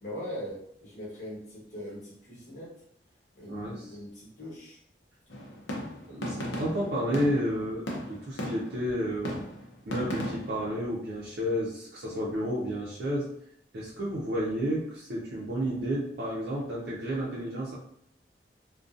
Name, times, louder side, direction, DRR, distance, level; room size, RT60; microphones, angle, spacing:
voice 1, 0.0-2.7 3.3-4.8, equal, 45° left, -6 dB, 1.1 m, -41 dB
voice 2, 3.5-4.0 6.1-9.3 9.9-13.3 13.7-17.7, equal, 60° right, -6 dB, 0.5 m, -31 dB
sound 1, 5.3-8.9 9.2-10.7, equal, 80° left, 0.6 m, -36 dB
2.5 x 2.2 x 2.4 m, 0.70 s
head